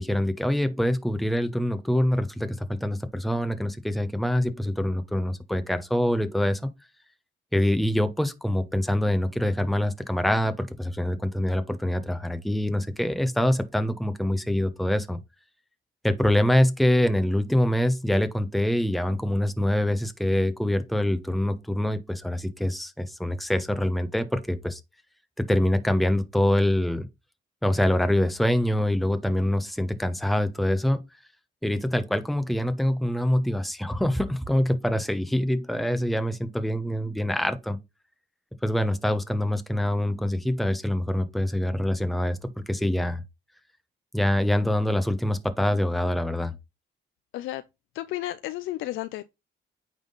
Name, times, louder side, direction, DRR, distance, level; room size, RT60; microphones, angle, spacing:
voice 1, 0.0-6.7 7.5-15.2 16.0-24.8 25.5-27.1 27.6-31.0 31.6-37.8 38.6-42.4 42.7-43.2 44.1-46.5, left 1 dB, ahead, 1.0 m, -25 dB
voice 2, 47.9-49.3, left 15 dB, 85° left, 0.5 m, -32 dB
8.9 x 3.7 x 3.9 m
cardioid pair, 90°, 20 cm